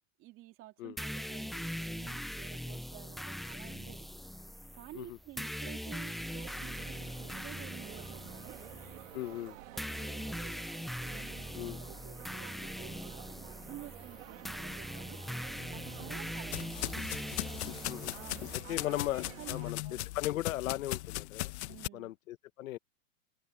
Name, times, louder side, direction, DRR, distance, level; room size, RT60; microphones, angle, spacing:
voice 1, 0.2-4.1 4.7-8.5 9.5-10.6 11.0-15.2 15.7-17.0 18.1-18.9 19.4-20.1 21.7-22.1, right 16 dB, 30° right, 3.1 m, -52 dB
sound 1, 1.0-18.6, equal, ahead, 0.5 m, -41 dB
sound 2, 6.2-19.7, right 14 dB, 70° right, 2.8 m, -51 dB
voice 2, 9.1-9.6 11.6-11.8 17.8-18.1 18.7-19.2 19.5-19.8 20.1-21.5 21.9-22.8, left 14 dB, 80° left, 1.1 m, -37 dB
sound 3, 15.5-21.9, left 18 dB, 55° left, 1.4 m, -39 dB
supercardioid pair, 150°, 40 cm